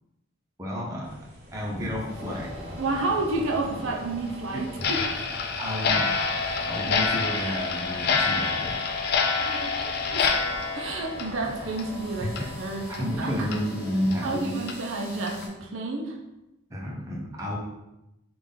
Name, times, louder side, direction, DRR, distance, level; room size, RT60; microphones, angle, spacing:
voice 1, 0.6-1.2 1.5-2.5 4.5-4.6 5.6-6.1 6.7-8.8 12.2-12.5 13.0-14.6 16.7-17.6, equal, 15° right, -3 dB, 0.6 m, -31 dB
sound 1, 1.0-13.5, equal, 40° right, 0.9 m, -43 dB
sound 2, 2.1-15.5, left 1 dB, 80° right, 0.9 m, -44 dB
voice 2, 2.8-5.1 9.4-10.2 10.7-13.3 14.2-16.2, right 2 dB, 65° right, 0 dB, 0.5 m, -30 dB
Clock, 4.8-12.0 12.3-12.4 12.9-13.0 13.5-13.6 14.1-14.2 14.7-14.8 15.3-15.4, left 5 dB, 45° left, 0.3 m, -27 dB
3.5 x 2.5 x 3.6 m, 0.92 s
head